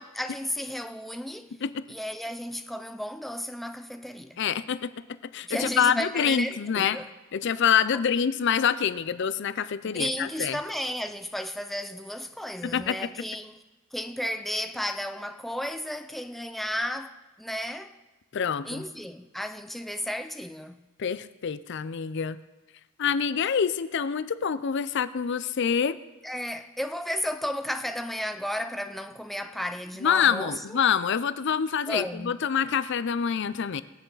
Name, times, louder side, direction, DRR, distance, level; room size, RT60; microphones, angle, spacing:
voice 1, 0.0-1.6 1.9-4.4 5.4-7.1 7.9-8.0 9.8-13.6 13.9-18.0 18.6-20.8 26.2-30.8 31.9-32.5, equal, ahead, 0.5 m, -33 dB
voice 2, 4.4-4.9 5.3-7.0 7.3-10.6 12.6-13.0 18.3-18.8 21.0-22.4 23.0-26.0 30.0-33.8, left 7 dB, 55° left, 0.5 m, -26 dB
24.0 x 8.1 x 4.0 m
head